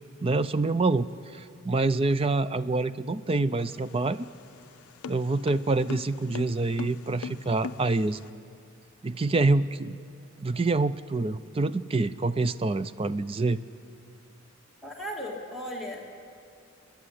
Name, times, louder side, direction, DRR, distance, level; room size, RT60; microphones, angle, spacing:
voice 1, 0.2-4.3 5.1-8.2 9.0-10.0 10.4-13.6, right 3 dB, 25° right, 14 dB, 0.4 m, -26 dB
sound 1, 3.5-8.3, left 5 dB, 90° left, 0.4 m, -41 dB
voice 2, 14.8-16.1, equal, ahead, -1 dB, 2.1 m, -36 dB
28.0 x 10.5 x 10.0 m, 2.4 s
head